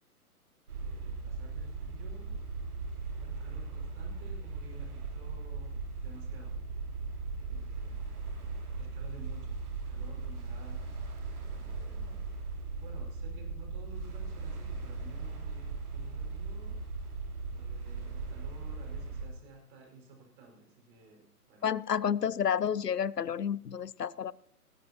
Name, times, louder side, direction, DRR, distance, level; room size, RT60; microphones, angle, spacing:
voice 1, 0.7-2.4 3.1-6.6 7.3-8.0 8.8-10.8 11.5-12.2 12.8-16.8 17.5-21.7, right 4 dB, 35° right, 0 dB, 5.6 m, -54 dB
sound 1, 0.7-19.3, right 4 dB, 65° right, 3.5 m, -38 dB
voice 2, 21.6-24.3, left 8 dB, 90° left, 22 dB, 0.6 m, -30 dB
19.0 x 15.0 x 2.9 m, 0.70 s
figure-of-eight pair, 125°, 46 cm